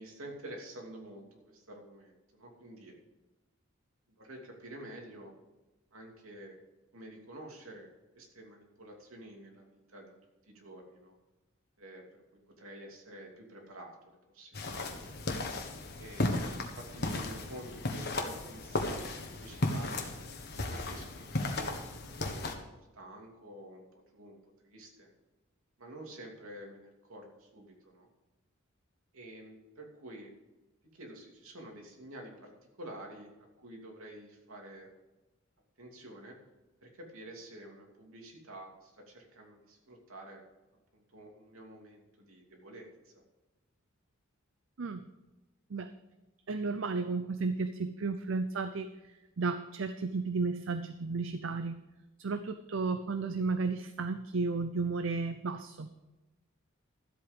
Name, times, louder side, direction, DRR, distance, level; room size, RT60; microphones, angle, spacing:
voice 1, 0.0-2.9 4.2-5.3 5.9-6.6 6.9-7.9 8.1-10.1 10.5-11.1 11.8-12.0 12.6-15.1 16.0-16.3 16.8-20.0 20.7-21.7 22.0-25.1 25.8-28.1 29.1-30.3 30.9-32.5 32.8-34.9 35.8-36.4 36.8-40.4 40.9-43.1, right 1 dB, 75° right, 1 dB, 2.8 m, -49 dB
sound 1, 14.5-22.5, left 2 dB, 50° left, 1.5 m, -35 dB
voice 2, 46.5-48.9 49.4-51.8 52.2-55.9, right 4 dB, 60° right, 10 dB, 0.6 m, -33 dB
13.5 x 8.2 x 5.3 m, 1.1 s
head